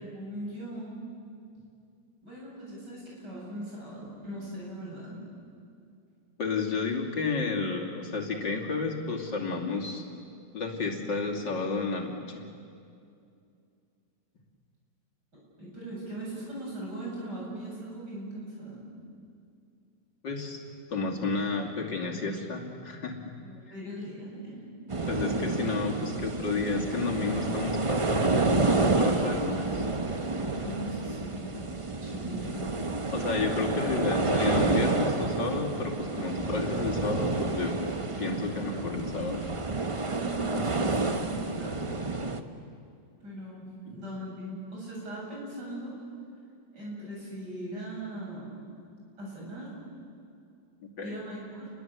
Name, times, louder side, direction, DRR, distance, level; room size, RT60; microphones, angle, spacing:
voice 1, 0.1-1.0 2.2-5.2 15.3-18.8 23.4-24.6 30.4-31.5 32.0-32.8 40.1-41.9 43.2-46.0 46.7-48.5 49.2-49.7 51.0-51.7, right 1 dB, 70° right, -4 dB, 8.8 m, -39 dB
voice 2, 6.4-10.0 10.5-12.4 20.2-20.6 20.9-23.3 25.1-29.9 33.1-37.8 38.2-39.5 43.9-44.0 51.0-51.2, left 4 dB, 80° left, 0 dB, 3.3 m, -31 dB
sound 1, 24.9-42.4, right 3 dB, 25° right, 0.7 m, -29 dB
30.0 x 22.0 x 8.2 m, 2.4 s
omnidirectional pair, 1.9 m